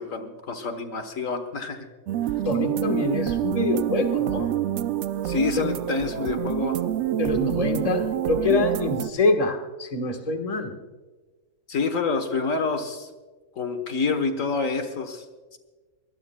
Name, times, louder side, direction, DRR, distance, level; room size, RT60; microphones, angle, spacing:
voice 1, 0.0-1.9 5.2-6.8 11.7-13.1 13.6-15.2 15.5-15.6, left 4 dB, 65° left, 7 dB, 1.5 m, -27 dB
sound 1, 2.1-9.1, right 12 dB, 65° right, 0.8 m, -27 dB
voice 2, 2.4-4.5 7.2-10.7, left 3 dB, 25° left, 5 dB, 1.3 m, -25 dB
22.5 x 19.5 x 2.2 m, 1.3 s
omnidirectional pair, 1.5 m